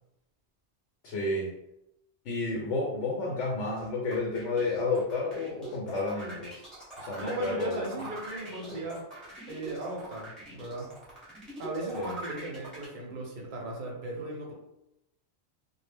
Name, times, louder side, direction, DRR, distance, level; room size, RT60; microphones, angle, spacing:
voice 1, 1.0-1.5 2.2-6.6 7.0-7.8 11.9-12.2, left 3 dB, 80° left, -2 dB, 0.9 m, -31 dB
sound 1, 3.8-12.9, right 1 dB, ahead, 0.8 m, -43 dB
voice 2, 7.2-9.1 9.5-10.9 11.6-14.5, right 2 dB, 55° right, -1 dB, 0.7 m, -37 dB
2.1 x 2.0 x 3.3 m, 0.84 s
omnidirectional pair, 1.2 m